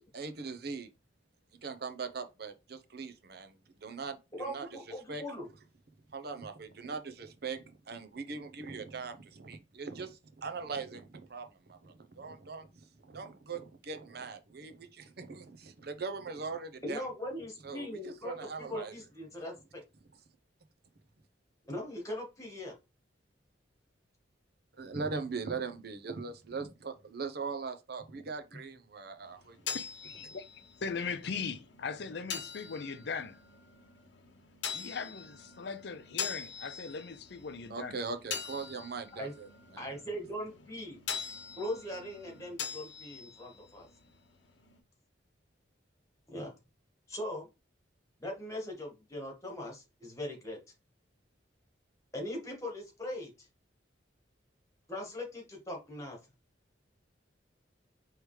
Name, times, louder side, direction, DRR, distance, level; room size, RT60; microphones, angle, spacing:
voice 1, 0.1-0.9 1.6-3.5 3.8-4.7 5.1-5.2 6.1-12.7 13.1-17.0 17.6-18.9 24.8-29.6 37.7-39.5 39.7-39.8, right 4 dB, 60° right, 0.7 m, -40 dB
voice 2, 4.3-5.5 16.8-19.8 21.7-22.8 28.5-28.6 39.2-39.3 39.8-41.0 41.6-43.9 46.3-46.5 47.1-47.5 48.2-50.6 52.1-53.3 54.9-56.2, left 1 dB, 15° left, 1.6 m, -40 dB
sound 1, 29.2-44.8, left 6 dB, 80° left, 0.9 m, -44 dB
voice 3, 29.7-30.4 30.8-33.4 34.7-38.0, left 5 dB, 65° left, 0.5 m, -39 dB
4.8 x 3.2 x 3.2 m
head